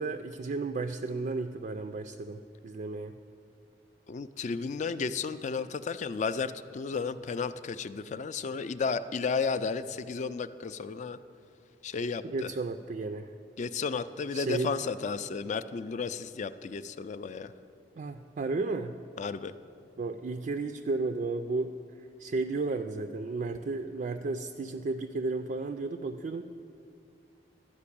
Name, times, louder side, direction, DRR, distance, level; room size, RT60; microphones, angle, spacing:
voice 1, 0.0-3.2 12.2-13.3 14.3-14.8 18.0-19.0 20.0-26.4, right 3 dB, 45° right, 7 dB, 0.3 m, -33 dB
voice 2, 4.1-11.2 11.8-12.5 13.6-17.5 19.2-19.5, left 5 dB, 40° left, 13 dB, 0.3 m, -33 dB
12.0 x 5.2 x 8.5 m, 2.4 s
head